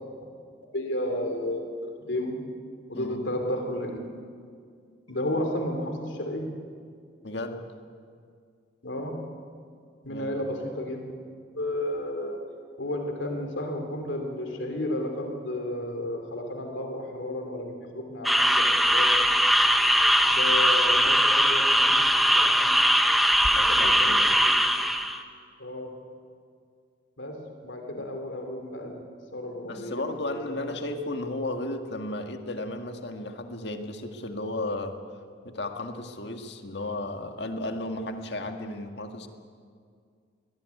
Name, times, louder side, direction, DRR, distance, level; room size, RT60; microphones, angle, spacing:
voice 1, 0.7-2.5 2.9-4.0 5.1-6.6 8.8-9.3 10.0-11.1 11.5-12.4 12.8-19.3 20.3-22.1 22.4-22.8 23.5-24.5 25.6-26.0 27.2-29.0 29.3-30.7, left 1 dB, 85° left, 4 dB, 3.0 m, -33 dB
voice 2, 7.2-7.7 10.1-10.4 23.6-24.4 28.0-28.1 29.7-35.0 35.4-39.3, left 2 dB, 65° left, 5 dB, 1.8 m, -34 dB
sound 1, 18.2-25.2, equal, ahead, 0.9 m, -21 dB
22.0 x 18.5 x 9.5 m, 2.2 s
head